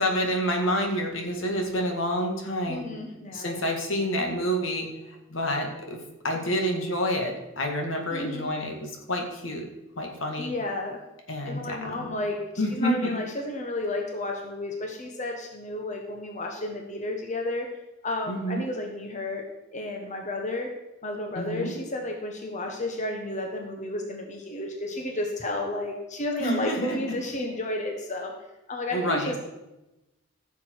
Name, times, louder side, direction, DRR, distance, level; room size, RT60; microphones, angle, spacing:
voice 1, 0.0-2.8 3.3-4.9 5.3-9.7 10.0-10.5 11.3-12.1 12.6-13.2 18.3-18.6 21.4-21.7 26.4-27.0 28.9-29.3, equal, 75° left, 2 dB, 2.0 m, -28 dB
voice 2, 2.7-3.6 8.1-8.5 10.4-11.0 11.4-12.4 12.7-17.7 18.0-19.4 19.7-20.7 21.0-28.3 28.7-29.4, left 2 dB, 40° left, 2 dB, 1.3 m, -32 dB
15.0 x 7.0 x 4.7 m, 0.98 s
head